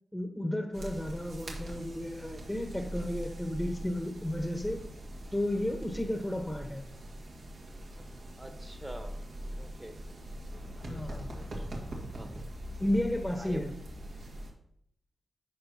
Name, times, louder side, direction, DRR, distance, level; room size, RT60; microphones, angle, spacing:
voice 1, 0.1-4.9 5.3-6.8 10.9-11.3 12.8-13.7, left 1 dB, 10° left, 5 dB, 1.0 m, -33 dB
sound 1, 0.7-14.5, right 1 dB, 80° right, 1.8 m, -42 dB
voice 2, 8.4-9.1 9.6-10.0 10.5-10.6 10.9-11.5 11.9-12.3 13.4-13.7, right 1 dB, 15° right, 6 dB, 1.1 m, -46 dB
12.0 x 5.0 x 2.8 m, 0.71 s
cardioid pair, 60°, 0 cm